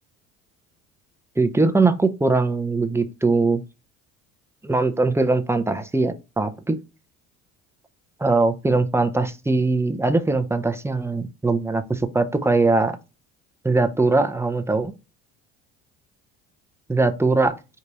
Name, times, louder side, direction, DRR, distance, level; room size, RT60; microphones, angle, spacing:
voice 1, 1.4-3.6 4.6-6.8 8.2-13.0 13.6-14.9 16.9-17.6, right 3 dB, 10° right, 0.6 m, -21 dB
4.8 x 2.7 x 4.0 m
supercardioid pair, 75°, 35 cm